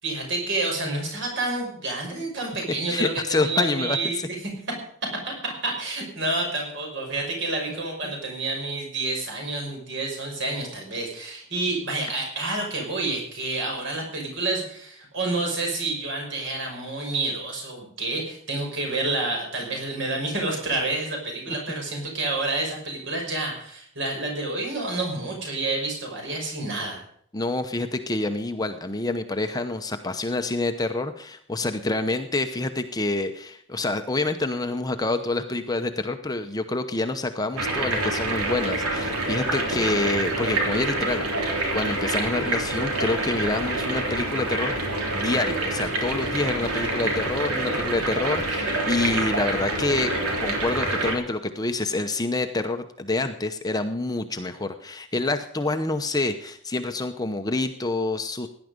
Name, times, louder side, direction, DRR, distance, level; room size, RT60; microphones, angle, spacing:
voice 1, 0.0-4.4 5.3-27.0, right 2 dB, 55° right, 1 dB, 6.0 m, -29 dB
voice 2, 2.9-4.3 7.7-7.8 21.5-21.6 27.3-41.5 41.7-44.7 45.1-58.5, left 2 dB, 15° left, 7 dB, 0.8 m, -27 dB
sound 1, 37.6-51.1, right 2 dB, 90° right, 3.6 m, -26 dB
17.5 x 10.5 x 5.2 m, 0.64 s
head